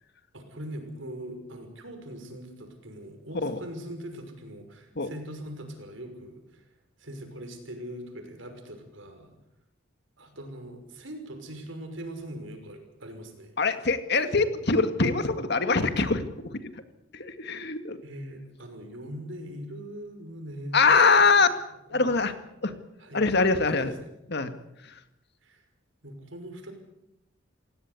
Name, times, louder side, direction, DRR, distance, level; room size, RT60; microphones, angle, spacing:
voice 1, 0.3-6.7 7.0-9.4 10.2-13.5 18.0-21.3 21.9-22.1 23.0-23.2 23.7-24.1 25.4-25.6 26.0-26.7, right 1 dB, 75° right, 6 dB, 6.0 m, -41 dB
voice 2, 13.6-16.2 16.6-16.7 17.1-18.0 20.7-21.5 21.9-22.3 22.6-22.7 23.1-23.9 24.3-24.5, left 4 dB, 55° left, 9 dB, 2.0 m, -23 dB
27.5 x 17.5 x 8.4 m, 0.88 s
head